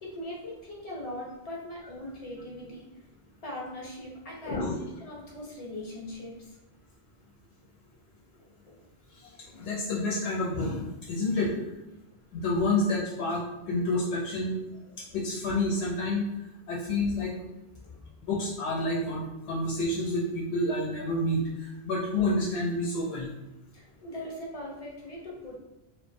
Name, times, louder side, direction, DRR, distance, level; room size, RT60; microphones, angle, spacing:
voice 1, 0.0-2.9 3.4-6.6 8.4-8.8 17.8-18.1 23.7-25.6, left 1 dB, 40° left, -3 dB, 0.7 m, -40 dB
voice 2, 4.4-4.8 9.5-11.7 12.3-14.6 15.1-16.3 16.7-17.4 18.3-23.3, left 2 dB, 90° left, -5 dB, 0.9 m, -29 dB
2.3 x 2.2 x 2.5 m, 0.98 s
omnidirectional pair, 1.1 m